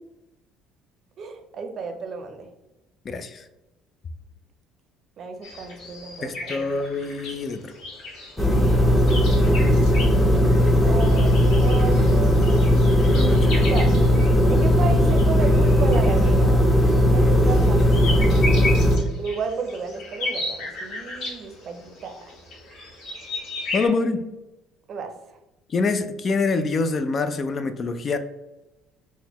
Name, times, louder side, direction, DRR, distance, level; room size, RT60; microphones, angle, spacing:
voice 1, 1.2-2.5 5.2-6.7 8.4-9.0 9.4-10.3 10.8-11.4 11.6-12.7 13.6-13.9 14.5-16.6 17.1-18.2 19.2-22.2 24.9-25.4, right 5 dB, 50° right, 6 dB, 0.5 m, -33 dB
voice 2, 3.1-3.4 6.2-7.7 13.1-13.6 23.7-24.2 25.7-28.2, left 3 dB, 40° left, 9 dB, 0.3 m, -25 dB
sound 1, 5.4-23.9, left 2 dB, 65° left, 1.1 m, -36 dB
sound 2, 8.4-19.0, equal, 10° left, 0.7 m, -17 dB
3.8 x 2.1 x 2.9 m, 0.98 s
supercardioid pair, 90°, 0 cm